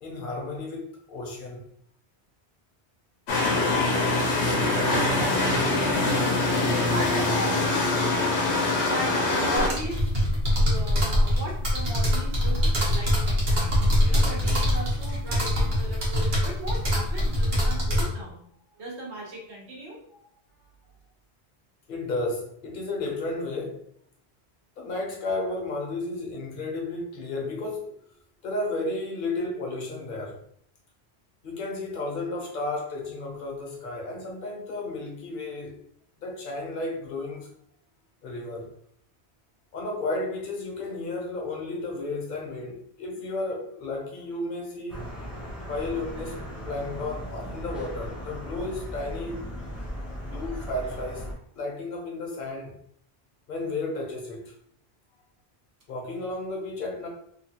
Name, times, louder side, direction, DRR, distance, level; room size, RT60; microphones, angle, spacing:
voice 1, 0.0-1.7 20.1-20.2 21.9-23.8 24.8-27.9 28.4-30.4 31.4-35.7 36.2-37.5 38.2-38.7 39.7-45.0 45.7-49.5 50.2-51.3 51.5-52.7 53.5-54.5 55.9-57.1, left 2 dB, 55° left, 0.8 m, -33 dB
sound 1, 3.3-9.7, left 2 dB, 85° left, 1.0 m, -24 dB
voice 2, 5.4-5.7 6.9-8.5 8.8-10.3 10.5-12.6 12.9-13.7 14.0-18.4 18.8-20.0, right 1 dB, 90° right, 1.2 m, -37 dB
sound 2, 9.6-18.0, left 1 dB, 65° right, 1.1 m, -23 dB
sound 3, 44.9-51.3, equal, ahead, 0.6 m, -37 dB
2.9 x 2.2 x 2.8 m
omnidirectional pair, 1.1 m